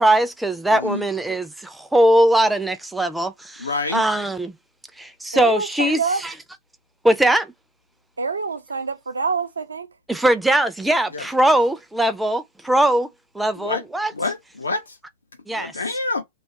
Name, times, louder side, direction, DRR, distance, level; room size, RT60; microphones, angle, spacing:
voice 1, 0.0-4.5 5.0-6.3 7.0-7.5 10.1-13.1 13.3-14.1 15.5-15.7, right 1 dB, 5° right, 0.3 m, -20 dB
voice 2, 0.7-1.0 3.6-4.0 11.1-11.2 13.6-13.8 14.1-15.0 15.5-16.2, left 3 dB, 85° left, 0.5 m, -27 dB
voice 3, 5.3-6.2 8.2-9.9, right 4 dB, 85° right, 0.4 m, -26 dB
2.3 x 2.0 x 2.7 m
figure-of-eight pair, 105°, 0 cm